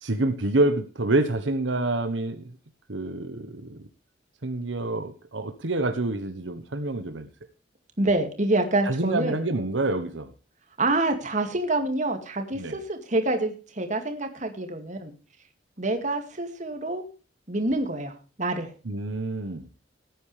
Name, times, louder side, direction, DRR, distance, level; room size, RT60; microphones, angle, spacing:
voice 1, 0.0-2.4 2.9-3.8 4.4-7.3 8.8-10.3 12.6-12.8 18.8-19.7, right 2 dB, 85° right, 8 dB, 1.2 m, -27 dB
voice 2, 8.0-9.4 10.8-15.1 15.8-17.0 17.5-18.1 18.4-18.7, right 2 dB, 40° right, 6 dB, 2.3 m, -26 dB
18.0 x 9.3 x 3.4 m, 0.33 s
head